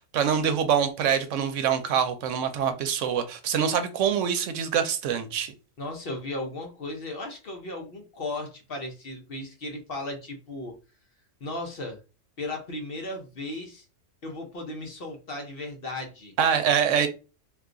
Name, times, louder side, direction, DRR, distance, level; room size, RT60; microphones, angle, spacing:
voice 1, 0.1-5.5 16.4-17.1, right 8 dB, 80° right, 0.9 m, -25 dB
voice 2, 5.8-10.8 11.4-12.0 12.4-13.9 14.2-16.4, left 2 dB, 55° left, 0.9 m, -36 dB
2.5 x 2.3 x 3.7 m
omnidirectional pair, 1.3 m